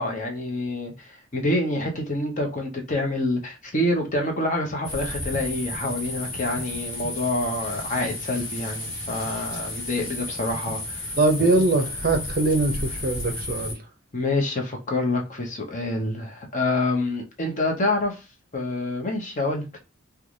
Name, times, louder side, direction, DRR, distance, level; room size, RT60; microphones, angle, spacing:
voice 1, 0.0-11.1 11.4-11.5 14.1-18.2 18.5-19.8, left 2 dB, 40° left, 0.8 m, -27 dB
sound 1, 4.8-13.7, left 1 dB, 65° left, 1.1 m, -33 dB
voice 2, 11.2-13.8, right 2 dB, 45° right, 0.6 m, -22 dB
3.2 x 2.3 x 2.5 m
head